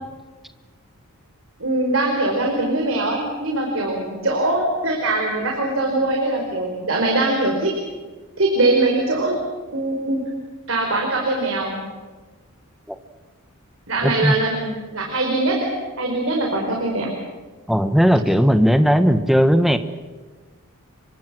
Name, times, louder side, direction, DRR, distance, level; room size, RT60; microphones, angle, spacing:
voice 1, 1.6-7.7 8.4-9.4 9.7-10.2 10.7-11.8 13.9-15.7 16.0-17.1, right 2 dB, 60° right, 0 dB, 4.8 m, -22 dB
voice 2, 14.0-14.4 17.7-19.8, equal, ahead, 9 dB, 1.3 m, -17 dB
30.0 x 24.5 x 6.3 m, 1.3 s
head